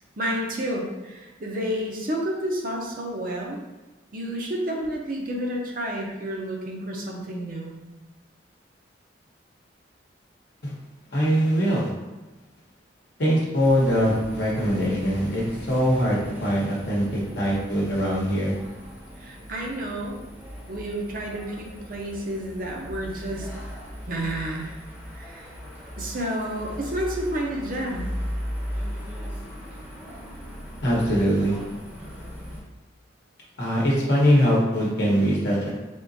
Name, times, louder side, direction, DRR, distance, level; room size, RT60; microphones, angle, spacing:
voice 1, 0.2-3.6 4.1-7.8 19.2-20.2 20.7-23.5 24.1-24.8 25.1-25.5 26.0-28.1, right 1 dB, 45° right, -1 dB, 0.6 m, -30 dB
voice 2, 11.1-11.9 13.2-18.5 30.8-31.6 33.6-35.7, equal, 60° left, -5 dB, 0.9 m, -22 dB
sound 1, 13.6-32.6, equal, 10° right, 0.7 m, -38 dB
3.7 x 3.6 x 2.7 m, 1.1 s
head